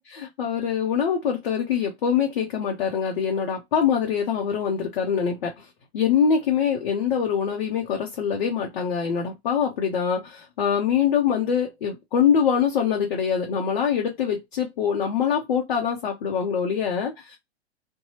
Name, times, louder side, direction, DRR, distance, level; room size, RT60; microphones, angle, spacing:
voice 1, 0.1-5.7 5.9-17.4, left 7 dB, 50° left, 0.8 m, -24 dB
2.7 x 2.3 x 2.7 m
figure-of-eight pair, 110°, 32 cm